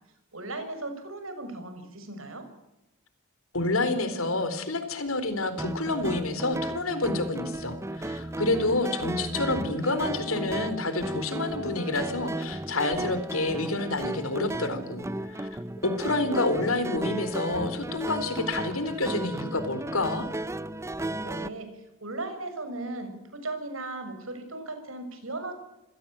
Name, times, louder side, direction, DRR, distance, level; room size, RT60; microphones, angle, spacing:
voice 1, 0.3-2.5 21.2-25.5, right 2 dB, 75° right, 8 dB, 6.3 m, -37 dB
voice 2, 3.5-15.5 15.8-20.3, left 2 dB, 85° left, 11 dB, 4.1 m, -28 dB
sound 1, 5.6-21.5, right 1 dB, 15° right, 0.8 m, -34 dB
27.0 x 17.0 x 9.0 m, 0.96 s
head